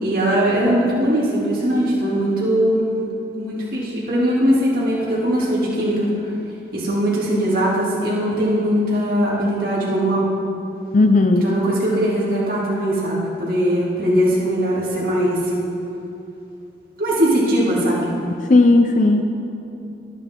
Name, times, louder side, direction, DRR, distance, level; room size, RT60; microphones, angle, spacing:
voice 1, 0.0-2.8 3.4-6.3 6.7-10.3 11.4-15.5 17.0-18.1, equal, 55° right, -7 dB, 2.6 m, -20 dB
voice 2, 10.9-11.6 18.5-19.2, left 2 dB, 45° left, 6 dB, 0.5 m, -14 dB
23.5 x 8.5 x 3.7 m, 2.8 s
head